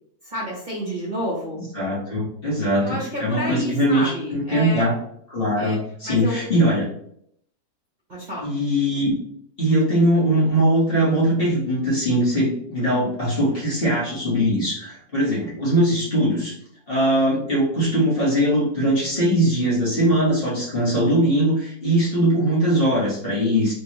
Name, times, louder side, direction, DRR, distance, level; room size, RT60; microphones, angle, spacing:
voice 1, 0.2-1.6 2.8-4.9 5.6-5.8 6.0-6.4 8.1-8.5, equal, 35° right, -6 dB, 1.1 m, -30 dB
voice 2, 1.7-4.9 5.3-6.8 8.4-9.1 9.6-16.5 16.9-23.7, right 1 dB, 40° left, -7 dB, 1.5 m, -21 dB
3.4 x 3.2 x 2.9 m, 0.70 s
omnidirectional pair, 1.6 m